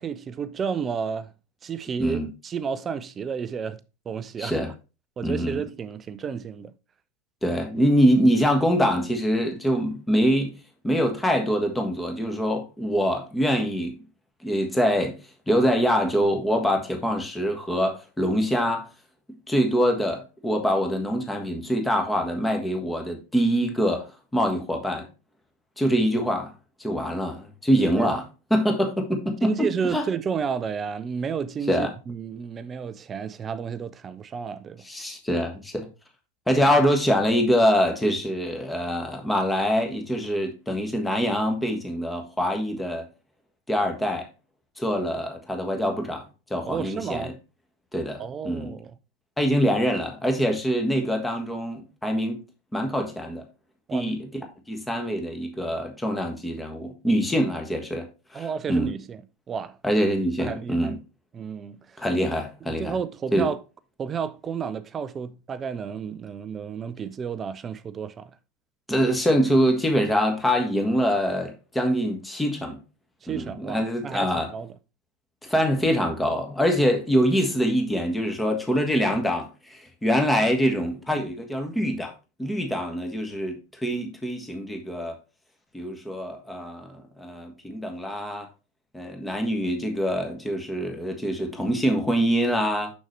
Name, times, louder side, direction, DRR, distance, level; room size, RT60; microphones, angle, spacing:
voice 1, 0.0-1.3 1.6-3.8 4.1-4.6 5.2-6.7 28.0-28.2 29.4-34.8 36.6-36.7 46.6-47.4 48.2-48.9 53.9-54.1 58.3-59.2 59.5-59.8 60.4-61.0 61.3-62.0 62.7-63.6 64.0-68.3 73.2-74.7, right 6 dB, 20° right, 0.5 m, -31 dB
voice 2, 4.4-4.7 5.2-5.6 7.4-10.5 10.8-14.0 14.4-15.2 15.5-18.9 19.5-25.1 25.8-26.5 26.8-28.2 28.5-30.0 31.7-31.9 34.8-35.9 36.5-43.1 43.7-44.3 44.8-46.2 46.5-47.3 47.9-48.8 49.4-52.4 52.7-53.4 53.9-54.3 54.7-58.9 59.8-61.0 62.0-62.9 63.3-63.5 68.9-72.8 73.3-74.5 75.4-82.1 82.4-85.2 85.7-88.5 88.9-92.9, equal, 5° left, 1.5 m, -24 dB
6.4 x 6.3 x 3.2 m
figure-of-eight pair, 90°, 0 cm